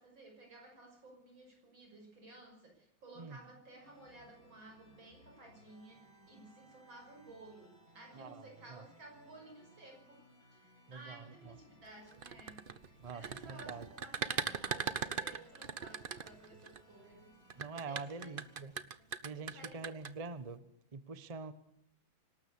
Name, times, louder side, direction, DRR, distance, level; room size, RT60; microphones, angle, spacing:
voice 1, 0.0-10.2 10.5-17.4 17.7-18.4 19.0-20.1, right 2 dB, 80° right, 2 dB, 6.7 m, -56 dB
sound 1, 3.8-18.6, equal, 45° left, 5.9 m, -63 dB
voice 2, 8.1-8.8 10.9-11.5 13.0-13.9 17.6-18.7 19.2-20.6 20.9-21.5, right 4 dB, 25° right, 13 dB, 0.9 m, -45 dB
sound 2, 12.1-16.8 17.5-20.1, right 6 dB, 45° right, 0.7 m, -39 dB
25.5 x 12.5 x 8.4 m, 0.76 s
omnidirectional pair, 2.1 m